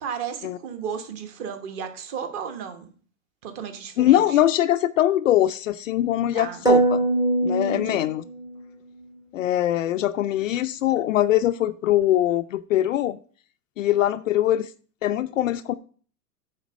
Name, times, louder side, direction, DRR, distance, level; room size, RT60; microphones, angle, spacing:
voice 1, 0.0-2.9 3.4-4.4 6.3-6.6 7.6-8.1, right 7 dB, 30° right, 7 dB, 1.2 m, -34 dB
voice 2, 4.0-7.0 7.4-8.2 9.3-13.2 13.8-14.7 15.0-15.7, left 13 dB, 55° left, 11 dB, 0.5 m, -22 dB
sound 1, 6.7-8.6, right 2 dB, 5° right, 0.7 m, -22 dB
9.4 x 3.9 x 6.2 m, 0.42 s
supercardioid pair, 160°, 48 cm